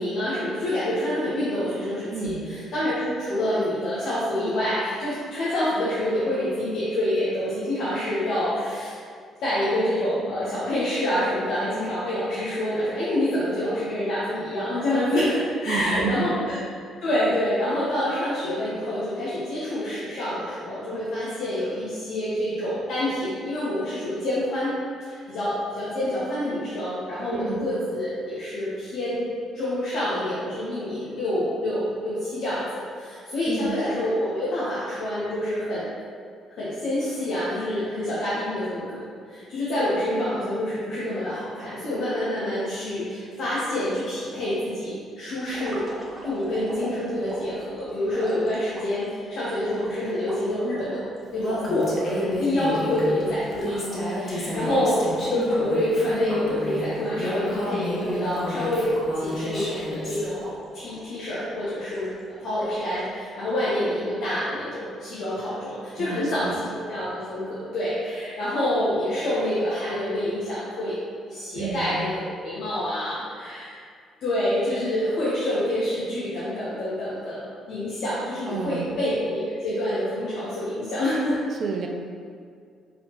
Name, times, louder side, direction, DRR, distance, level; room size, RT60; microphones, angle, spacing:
voice 1, 0.0-8.9 9.4-16.6 17.0-24.8 25.0-32.6 32.9-35.9 36.6-45.9 46.2-51.0 51.3-53.8 54.1-60.5 60.7-62.1 62.4-71.0 71.3-73.7 74.2-81.4, left 1 dB, 65° left, -10 dB, 1.0 m, -27 dB
voice 2, 2.1-2.5 15.7-16.4 27.3-27.6 33.5-33.8 54.5-54.8 66.0-66.6 71.5-72.1 78.5-79.0 81.6-81.9, right 5 dB, 50° right, 3 dB, 0.5 m, -31 dB
sound 1, 45.5-49.1 49.6-52.1 52.5-52.6 52.8-55.7 56.0-56.2 56.5-59.0 59.5-60.0 60.4-61.1 61.6-62.2 62.6-63.1, equal, 35° right, 1.3 m, -42 dB
Female speech woman speaking, 51.4-60.2, left 1 dB, 45° left, 1.2 m, -30 dB
5.0 x 3.5 x 3.0 m, 2.2 s
hypercardioid pair, 45°, 0 cm